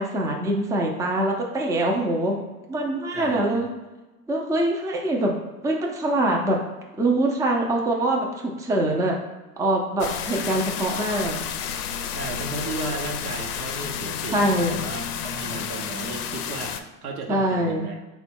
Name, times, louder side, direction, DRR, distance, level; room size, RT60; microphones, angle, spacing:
voice 1, 0.0-2.4 2.7-3.7 4.3-5.3 5.6-6.6 7.0-9.2 9.6-11.4 14.3-14.8 17.3-17.9, right 1 dB, 10° right, 0 dB, 0.5 m, -24 dB
voice 2, 3.1-3.6 10.3-10.6 12.1-16.8 17.0-18.0, right 3 dB, 75° right, 2 dB, 0.9 m, -34 dB
sound 1, 10.0-16.8, left 8 dB, 85° left, 0.5 m, -31 dB
3.6 x 2.3 x 4.3 m, 1.1 s
hypercardioid pair, 95°, 45 cm